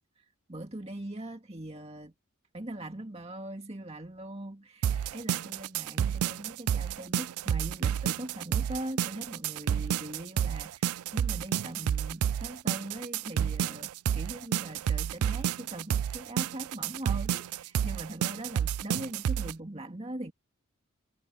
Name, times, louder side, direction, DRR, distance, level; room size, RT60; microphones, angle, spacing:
voice 1, 0.2-2.1 2.5-20.3, right 1 dB, 30° right, 2.0 m, -41 dB
sound 1, 4.8-19.5, right 9 dB, 80° right, 0.3 m, -30 dB
head